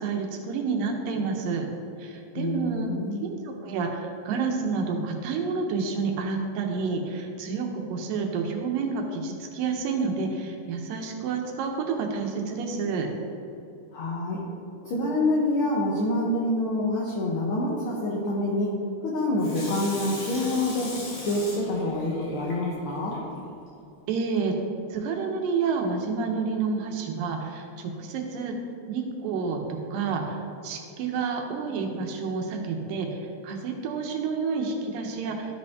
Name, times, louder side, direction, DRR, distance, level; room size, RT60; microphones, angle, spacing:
voice 1, 0.0-1.7 2.0-2.9 3.2-13.1 24.1-24.6 24.9-28.5 28.9-35.5, right 5 dB, 85° right, 2 dB, 2.6 m, -29 dB
voice 2, 2.3-3.2 13.9-14.4 14.8-18.7 19.0-20.9 21.2-23.2, left 1 dB, 75° left, -4 dB, 1.2 m, -26 dB
Water tap faucet / Sink (filling or washing), 19.4-23.2 23.7-23.8, left 2 dB, 55° left, 2.8 m, -39 dB
13.0 x 5.1 x 3.6 m, 2.8 s
omnidirectional pair, 3.8 m